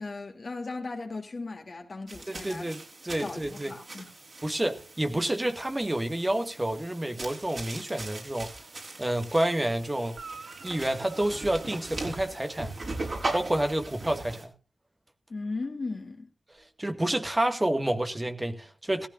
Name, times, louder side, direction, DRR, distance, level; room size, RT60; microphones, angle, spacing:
voice 1, 0.0-2.7 3.2-4.1 15.3-16.3, left 3 dB, 60° left, 3.0 m, -37 dB
sound 1, 2.1-14.4, right 2 dB, 60° right, 6.2 m, -40 dB
voice 2, 2.3-3.7 4.4-8.7 9.0-10.2 10.6-12.7 13.3-14.5 16.8-19.1, right 1 dB, 25° right, 2.0 m, -29 dB
Guitar, 10.1-12.7 16.5-16.6, right 4 dB, 85° right, 1.4 m, -48 dB
17.0 x 15.0 x 2.7 m
cardioid pair, 50°, 0 cm